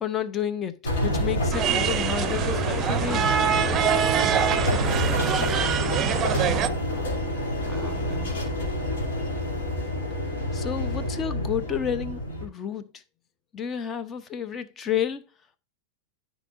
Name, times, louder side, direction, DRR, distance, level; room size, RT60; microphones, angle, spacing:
voice 1, 0.0-3.3 10.5-12.9 13.5-15.2, left 9 dB, 25° left, 0.8 m, -30 dB
sound 1, 0.8-12.5, left 1 dB, 60° left, 3.2 m, -28 dB
sound 2, 1.5-6.7, right 8 dB, 25° right, 0.7 m, -24 dB
voice 2, 4.8-6.1 6.3-8.6, right 3 dB, 5° right, 2.1 m, -45 dB
13.5 x 5.0 x 2.6 m
figure-of-eight pair, 90°, 0 cm